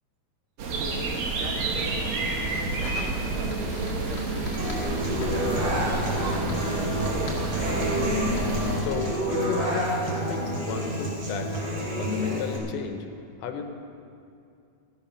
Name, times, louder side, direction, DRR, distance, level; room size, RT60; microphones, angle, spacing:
sound 1, 0.6-8.8, right 2 dB, 60° right, 2.8 m, -29 dB
Fire, 1.1-12.5, left 3 dB, 45° left, 1.6 m, -46 dB
voice 1, 1.3-2.1 2.8-5.9, right 6 dB, 85° right, 2 dB, 3.4 m, -41 dB
Human voice / Acoustic guitar, 4.6-12.6, equal, 35° right, 3.0 m, -29 dB
voice 2, 8.8-11.5 12.0-13.1 13.4-13.7, left 6 dB, 80° left, 6 dB, 3.0 m, -34 dB
14.0 x 13.0 x 5.6 m, 2.5 s
omnidirectional pair, 5.2 m